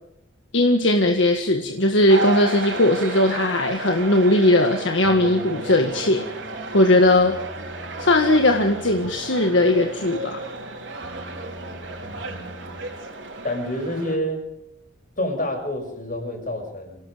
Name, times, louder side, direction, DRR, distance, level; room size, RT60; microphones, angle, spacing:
voice 1, 0.5-6.3 6.7-7.4 8.0-10.4, left 1 dB, 70° left, 4 dB, 1.8 m, -18 dB
sound 1, 2.1-14.2, right 3 dB, 70° right, 4.3 m, -33 dB
sound 2, 5.0-13.1, left 1 dB, 20° left, 4.0 m, -43 dB
voice 2, 12.0-12.6 13.4-14.4 15.2-17.1, equal, 45° left, 3 dB, 6.9 m, -28 dB
27.5 x 18.0 x 5.2 m, 0.83 s
head